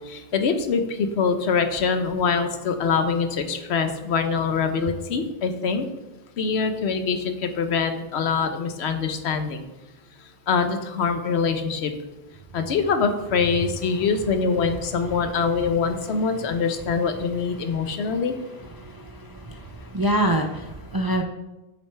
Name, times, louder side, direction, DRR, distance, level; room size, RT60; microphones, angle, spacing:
voice 1, 0.1-5.9 6.4-9.6 10.5-11.9 12.5-18.4, left 5 dB, 90° left, 8 dB, 1.0 m, -24 dB
voice 2, 18.8-19.5 19.9-21.2, right 1 dB, 35° right, 2 dB, 0.3 m, -25 dB
8.1 x 6.3 x 3.3 m, 1.0 s
omnidirectional pair, 1.1 m